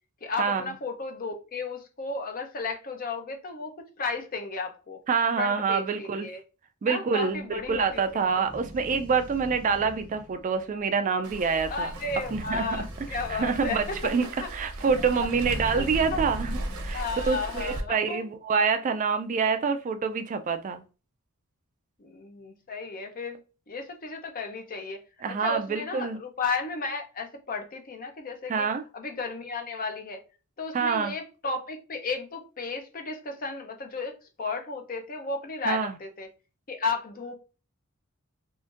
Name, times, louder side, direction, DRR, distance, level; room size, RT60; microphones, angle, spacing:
voice 1, 0.2-3.7 4.0-5.0 5.3-6.4 6.8-8.4 11.7-14.0 14.4-14.5 15.0-15.1 15.7-16.2 16.9-18.2 22.0-23.4 23.7-25.0 25.3-28.7 28.9-30.2 30.6-36.3 36.7-37.3, left 4 dB, 40° left, 0.6 m, -34 dB
voice 2, 5.1-6.3 6.8-11.9 12.3-12.8 13.1-14.3 14.5-16.6 16.8-20.8 25.2-26.2 28.5-28.8 30.7-31.1 35.6-35.9, right 5 dB, 35° right, 0.3 m, -26 dB
sound 1, 7.3-17.0, right 1 dB, 20° left, 1.1 m, -42 dB
Waves surf, 11.2-17.8, right 1 dB, 90° right, 0.7 m, -37 dB
3.7 x 2.5 x 2.5 m
head